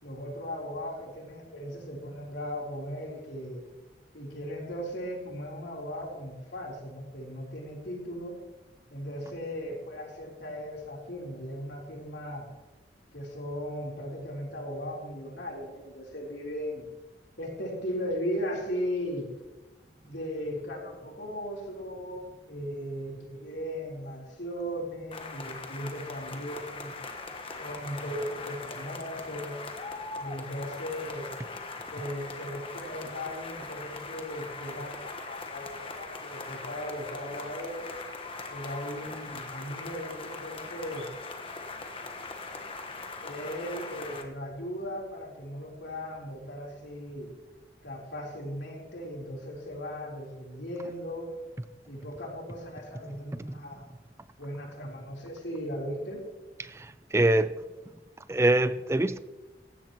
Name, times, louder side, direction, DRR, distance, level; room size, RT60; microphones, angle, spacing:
voice 1, 0.0-3.6 4.1-8.4 8.9-12.5 13.1-16.9 17.4-19.3 20.0-26.9 27.6-29.6 30.2-31.3 31.9-37.9 38.5-41.1 43.2-47.3 47.8-51.3 51.9-53.9 54.4-56.2, equal, 90° left, 3.7 m, -37 dB
sound 1, 25.1-44.2, left 3 dB, 30° left, 1.2 m, -41 dB
voice 2, 56.7-57.5 58.3-59.2, right 1 dB, 15° right, 0.4 m, -24 dB
17.5 x 15.0 x 3.0 m
head